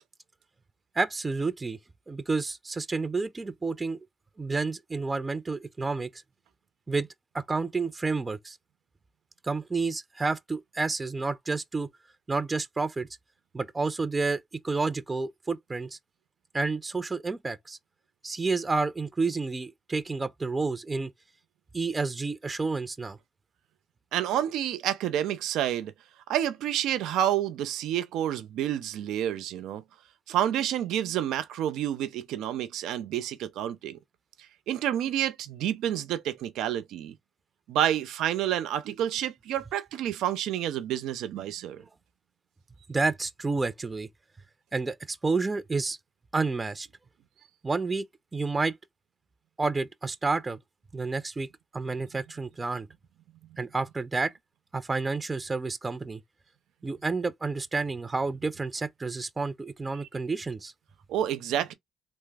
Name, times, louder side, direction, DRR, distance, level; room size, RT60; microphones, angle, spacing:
voice 1, 1.0-1.8 2.1-4.0 4.4-6.2 6.9-7.1 7.3-8.6 9.4-11.9 12.3-13.1 13.5-16.0 16.5-17.8 18.2-21.1 21.7-23.2 42.9-44.1 44.7-46.0 46.3-46.9 47.6-48.0 48.3-48.7 49.6-50.6 50.9-51.5 51.7-52.9 53.6-54.3 54.7-56.2 56.8-60.7, right 3 dB, 25° right, 0.4 m, -30 dB
voice 2, 24.1-25.9 26.3-29.8 30.3-34.0 34.7-37.1 37.7-41.8 61.1-61.7, right 11 dB, 85° right, 0.5 m, -29 dB
3.4 x 2.0 x 3.3 m
cardioid pair, 90°, 0 cm